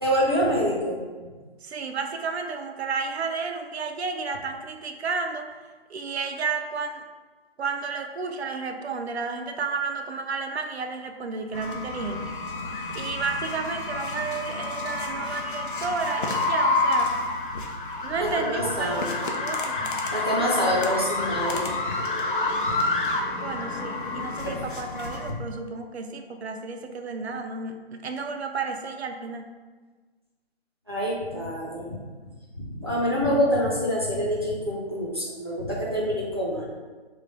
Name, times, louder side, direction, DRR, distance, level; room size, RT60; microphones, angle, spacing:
voice 1, 0.0-1.0 18.2-19.1 20.1-21.7 24.4-24.6 30.9-32.0 32.6-36.7, equal, 25° right, -5 dB, 0.4 m, -26 dB
voice 2, 1.6-5.5 5.9-7.0 7.6-12.3 12.9-17.1 18.0-20.0 23.3-29.5, right 4 dB, 85° right, 5 dB, 0.5 m, -32 dB
sound 1, 11.5-25.3, left 2 dB, 55° left, 0.5 m, -29 dB
3.1 x 2.0 x 3.9 m, 1.4 s
hypercardioid pair, 165°, 31 cm